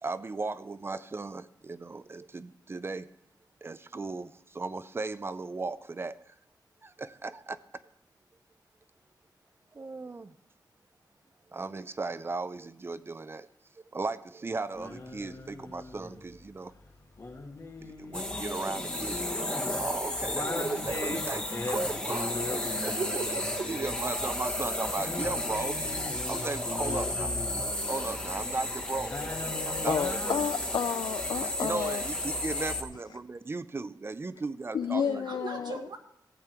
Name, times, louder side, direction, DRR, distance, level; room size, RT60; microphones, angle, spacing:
voice 1, 0.0-3.1 3.6-6.3 6.8-7.6 9.7-10.3 11.5-13.5 13.9-16.7 17.8-23.0 23.6-25.8 26.3-27.3 27.9-29.2 29.7-30.4 31.4-35.2, right 3 dB, 30° right, 14 dB, 0.5 m, -36 dB
sound 1, 14.7-30.5, left 3 dB, 45° left, 1.6 m, -41 dB
sound 2, 18.1-32.8, left 1 dB, 15° left, 1.3 m, -33 dB
voice 2, 23.0-24.4 34.8-36.0, right 4 dB, 70° right, 4 dB, 1.6 m, -38 dB
voice 3, 29.9-32.0 34.7-35.9, left 7 dB, 70° left, 11 dB, 0.4 m, -31 dB
14.5 x 8.6 x 4.4 m, 0.77 s
wide cardioid pair, 100°, 8 cm